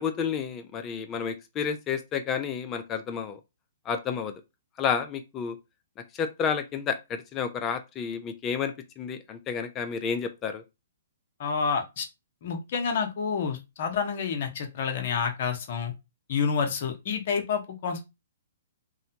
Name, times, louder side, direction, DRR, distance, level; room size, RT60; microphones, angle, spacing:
voice 1, 0.0-3.4 3.9-4.3 4.8-5.6 6.1-10.6, left 6 dB, 25° left, 0.4 m, -30 dB
voice 2, 11.4-12.1 12.4-15.9 16.3-18.0, left 6 dB, 50° left, 0.7 m, -29 dB
2.7 x 2.1 x 2.7 m
hypercardioid pair, 125°, 0 cm